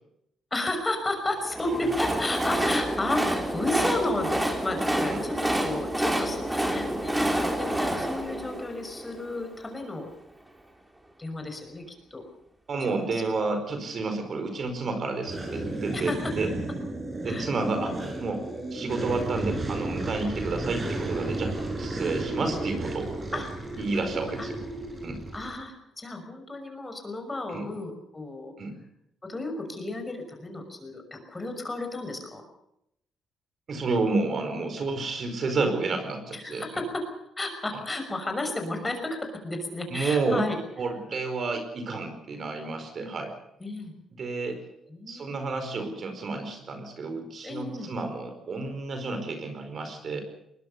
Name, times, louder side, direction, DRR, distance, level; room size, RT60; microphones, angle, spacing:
voice 1, 0.5-10.1 11.2-11.9 12.1-12.2 12.8-13.2 15.9-16.3 17.2-18.0 23.3-24.5 25.3-28.5 29.2-32.4 36.3-37.1 37.4-40.6 43.0-43.2 43.6-43.9 44.9-45.6 47.4-47.9, left 2 dB, 20° left, 6 dB, 6.0 m, -33 dB
Train, 1.4-9.5, right 1 dB, 10° right, 3.6 m, -28 dB
voice 2, 12.7-16.5 17.2-18.4 18.7-23.4 23.8-24.6 25.0-25.2 27.5-27.7 28.6-28.8 33.7-36.7 39.9-40.5 40.8-43.3 44.1-44.6 45.1-50.2, right 3 dB, 50° right, 7 dB, 4.8 m, -30 dB
sound 1, 15.3-25.6, right 2 dB, 25° right, 6.7 m, -33 dB
21.5 x 20.0 x 6.9 m, 0.79 s
cardioid pair, 90°, 0 cm